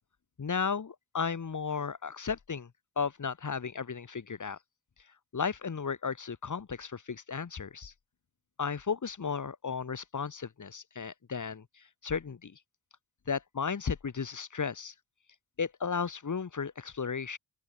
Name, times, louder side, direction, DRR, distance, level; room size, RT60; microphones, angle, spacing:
voice 1, 0.4-2.7 3.0-4.6 5.3-7.9 8.6-11.6 12.0-12.5 13.3-14.9 15.6-17.4, left 6 dB, 45° left, 6.3 m, -34 dB
open air
supercardioid pair, 55°, 41 cm